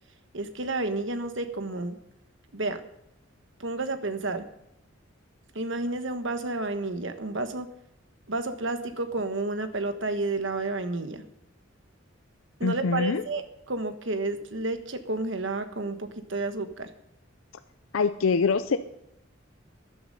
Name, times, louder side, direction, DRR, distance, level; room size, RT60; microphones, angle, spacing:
voice 1, 0.3-2.0 2.5-2.8 3.6-4.5 5.5-7.7 8.3-11.2 12.6-16.9, right 2 dB, 65° right, 9 dB, 1.3 m, -31 dB
voice 2, 12.6-13.2 17.9-18.8, left 5 dB, 90° left, 10 dB, 0.6 m, -24 dB
14.0 x 11.0 x 5.4 m, 0.85 s
head